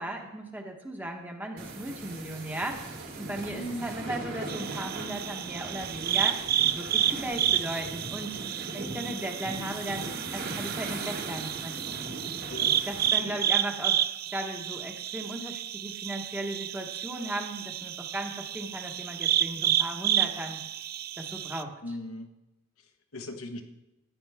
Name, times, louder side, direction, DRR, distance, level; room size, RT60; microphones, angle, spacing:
voice 1, 0.0-2.8 3.2-6.4 6.7-8.4 8.7-12.0 12.9-14.0 14.3-20.6 21.2-21.7, right 1 dB, 10° right, 2 dB, 1.2 m, -36 dB
sound 1, 1.6-13.1, right 2 dB, 70° right, 4.4 m, -39 dB
voice 2, 3.5-4.0 12.5-13.4 21.8-22.3 22.8-23.6, left 1 dB, 80° left, 4 dB, 1.4 m, -39 dB
sound 2, 4.5-21.6, right 11 dB, 45° right, 0.4 m, -30 dB
14.5 x 9.6 x 3.5 m, 0.97 s
head